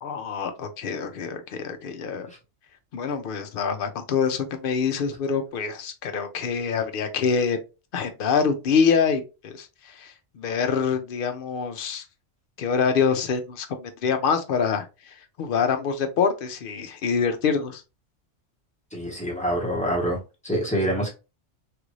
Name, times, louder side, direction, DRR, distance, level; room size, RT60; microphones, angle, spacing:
voice 1, 0.0-2.3 2.9-7.6 7.9-12.0 12.6-17.8, left 6 dB, 60° left, 0.7 m, -25 dB
voice 2, 18.9-20.2 20.4-21.1, equal, 5° left, 1.0 m, -26 dB
3.3 x 2.5 x 3.0 m
omnidirectional pair, 1.2 m